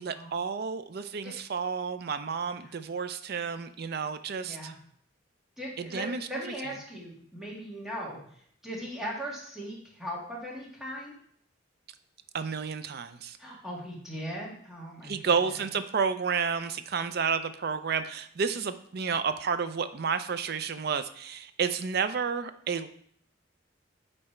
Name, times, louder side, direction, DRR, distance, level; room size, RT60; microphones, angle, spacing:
voice 1, 0.0-4.7 5.8-6.3 6.6-6.7 12.3-13.4 15.0-22.9, right 6 dB, 55° right, 11 dB, 0.5 m, -31 dB
voice 2, 4.4-4.8 5.6-8.2 8.6-11.1 13.4-15.3, equal, 5° right, -4 dB, 1.7 m, -39 dB
8.6 x 3.3 x 4.3 m, 0.63 s
head